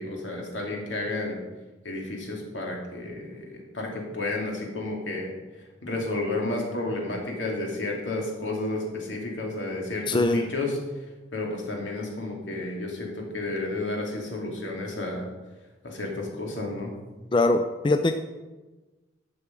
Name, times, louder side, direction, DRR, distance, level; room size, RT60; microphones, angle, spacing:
voice 1, 0.0-1.4 1.8-5.3 5.8-10.8 11.3-15.3 15.8-16.9, left 2 dB, 80° left, -1 dB, 2.6 m, -31 dB
voice 2, 10.1-10.4 17.3-18.1, left 2 dB, 25° left, 8 dB, 0.4 m, -22 dB
11.5 x 7.1 x 5.2 m, 1.2 s
head